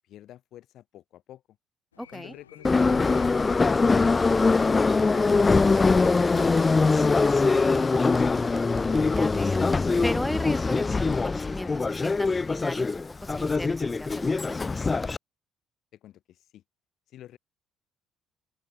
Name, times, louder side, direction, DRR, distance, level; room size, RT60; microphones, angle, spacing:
voice 1, 0.0-1.4 2.1-4.6 15.9-16.6 17.1-17.4, left 12 dB, 60° left, 3.2 m, -48 dB
sound 1, 1.9-9.4, left 9 dB, 85° left, 4.3 m, -53 dB
voice 2, 2.0-2.3 9.1-9.6 10.0-12.9 13.2-14.6, left 1 dB, 5° left, 2.9 m, -35 dB
Subway metro underground, 2.6-15.2, left 4 dB, 25° left, 0.7 m, -23 dB
sound 2, 4.8-9.8, right 3 dB, 25° right, 4.6 m, -41 dB
open air
figure-of-eight pair, 50°, 0 cm